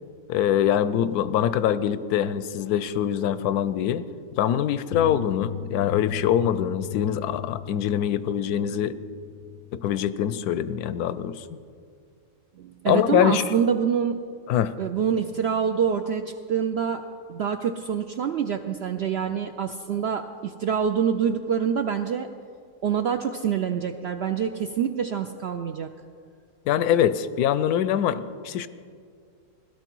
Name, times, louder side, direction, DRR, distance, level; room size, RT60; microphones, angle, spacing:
voice 1, 0.3-4.0 4.4-9.0 9.7-11.6 12.9-13.5 14.5-14.7 26.7-28.7, left 10 dB, 85° left, 14 dB, 1.1 m, -24 dB
sound 1, 4.9-9.9, left 8 dB, 55° left, 0.7 m, -37 dB
voice 2, 12.6-14.2 14.8-17.0 17.3-22.3 22.8-25.9, right 7 dB, 70° right, 7 dB, 0.6 m, -26 dB
16.5 x 12.0 x 4.6 m, 2.2 s
omnidirectional pair, 1.6 m